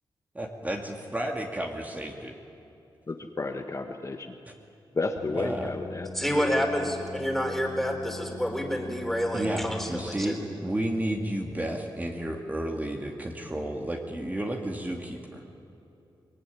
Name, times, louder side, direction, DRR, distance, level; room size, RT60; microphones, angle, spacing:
voice 1, 0.3-2.3 5.3-5.7 9.3-10.4 10.6-15.4, right 1 dB, 20° right, 1 dB, 2.2 m, -32 dB
voice 2, 3.1-4.3 4.9-6.5, left 3 dB, 35° left, 4 dB, 1.5 m, -32 dB
sound 1, 5.2-10.1, left 4 dB, 75° left, 1.8 m, -42 dB
voice 3, 6.1-10.4, equal, ahead, 3 dB, 4.1 m, -28 dB
23.5 x 20.5 x 10.0 m, 2.8 s
wide cardioid pair, 95°, 9 cm